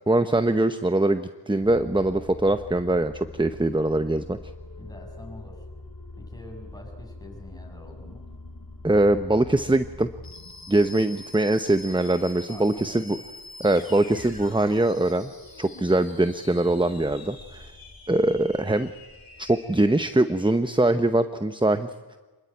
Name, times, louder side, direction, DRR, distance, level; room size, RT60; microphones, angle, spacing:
voice 1, 0.1-4.4 8.8-10.1 10.7-13.2 13.6-15.3 15.6-17.7 18.1-18.9 19.4-22.2, right 2 dB, 10° right, 10 dB, 0.8 m, -22 dB
sound 1, 1.6-20.9, left 2 dB, 55° left, 2.9 m, -44 dB
voice 2, 4.8-5.7 6.2-8.3 12.5-13.3, left 1 dB, 10° left, 0 dB, 7.4 m, -45 dB
26.0 x 21.5 x 9.3 m, 1.3 s
wide cardioid pair, 55°, 42 cm